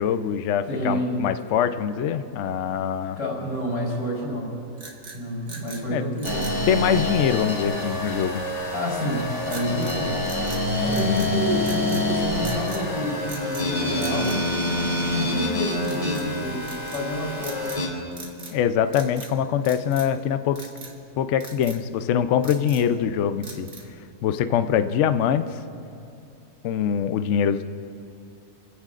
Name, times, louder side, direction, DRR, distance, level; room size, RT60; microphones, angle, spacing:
voice 1, 0.0-3.2 5.9-6.0 6.7-8.5 11.0-11.5 18.5-20.7 21.2-23.7 24.2-25.6 26.6-27.6, left 8 dB, 90° left, 10 dB, 0.6 m, -23 dB
voice 2, 0.7-1.2 3.2-4.5 5.1-6.7 8.7-10.2 10.8-14.4 15.1-17.8, equal, 65° left, -4 dB, 4.8 m, -29 dB
sound 1, 4.7-5.8 6.2-6.6 9.5-10.0 10.3-11.3 11.6-12.1 12.4-12.8 13.2-13.7 14.0-15.2 15.8-16.3 16.6-17.0 17.4-17.9 18.1-18.6 18.9-19.3 19.6-20.2 20.6-21.0 21.4-21.8 22.2-22.9 23.4-24.0, right 3 dB, 45° right, 1.6 m, -41 dB
sound 2, 6.2-17.9, left 1 dB, 30° left, 3.0 m, -27 dB
28.0 x 15.5 x 2.5 m, 2.6 s
omnidirectional pair, 1.9 m